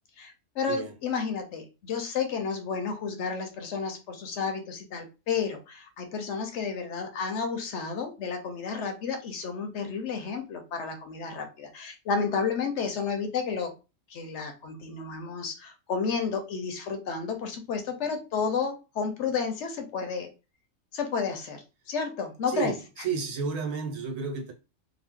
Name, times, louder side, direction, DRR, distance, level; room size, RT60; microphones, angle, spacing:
voice 1, 0.2-13.7 14.1-20.3 20.9-21.6 21.9-22.7, left 5 dB, 70° left, 0.9 m, -31 dB
voice 2, 22.5-24.5, right 5 dB, 80° right, 1.2 m, -32 dB
2.8 x 2.0 x 3.5 m
omnidirectional pair, 1.3 m